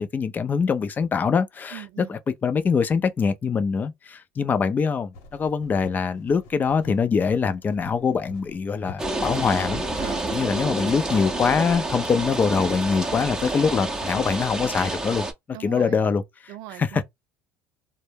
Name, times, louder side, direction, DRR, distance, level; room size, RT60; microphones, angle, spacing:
voice 1, 0.0-9.8 10.3-15.2 15.6-16.2 16.8-17.0, left 5 dB, 30° left, 0.5 m, -23 dB
voice 2, 1.7-2.2 10.0-10.3 15.5-16.0 16.5-17.0, right 14 dB, 65° right, 0.4 m, -39 dB
sound 1, 5.1-10.7, left 4 dB, 75° left, 1.0 m, -47 dB
sound 2, 9.0-15.3, right 2 dB, 10° right, 0.7 m, -29 dB
2.2 x 2.0 x 3.2 m
supercardioid pair, 90°, 6 cm